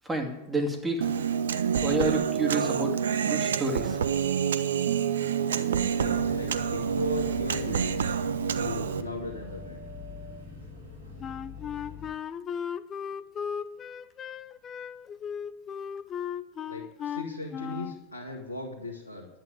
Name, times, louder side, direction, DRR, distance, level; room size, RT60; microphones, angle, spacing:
voice 1, 0.0-1.1 1.8-3.0 3.2-4.0, right 2 dB, 10° right, 3 dB, 2.5 m, -29 dB
Human voice, 1.0-9.0, right 7 dB, 65° right, 0.8 m, -27 dB
sound 1, 6.0-12.1, left 3 dB, 90° left, 4.3 m, -43 dB
voice 2, 6.0-8.1 8.5-9.8 16.6-19.3, left 1 dB, 90° right, -2 dB, 1.9 m, -37 dB
Wind instrument woodwind instrument, 11.2-18.0, left 7 dB, 25° left, 0.6 m, -36 dB
11.0 x 8.7 x 9.3 m, 0.94 s
figure-of-eight pair, 90°, 0 cm